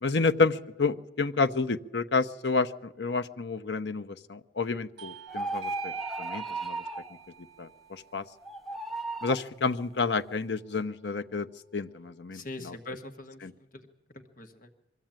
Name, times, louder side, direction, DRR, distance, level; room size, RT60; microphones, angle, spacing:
voice 1, 0.0-6.8 7.6-8.2 9.2-11.5 11.7-12.8 13.4-13.5, left 4 dB, 65° left, 9 dB, 0.8 m, -30 dB
Bell / Doorbell, 5.0-10.1, right 9 dB, 60° right, 2.6 m, -46 dB
sound 1, 5.3-7.1 8.4-9.4, right 2 dB, ahead, 0.7 m, -35 dB
voice 2, 12.3-13.9 14.1-14.7, left 2 dB, 45° left, 5 dB, 1.5 m, -43 dB
23.5 x 14.5 x 9.0 m, 1.0 s
head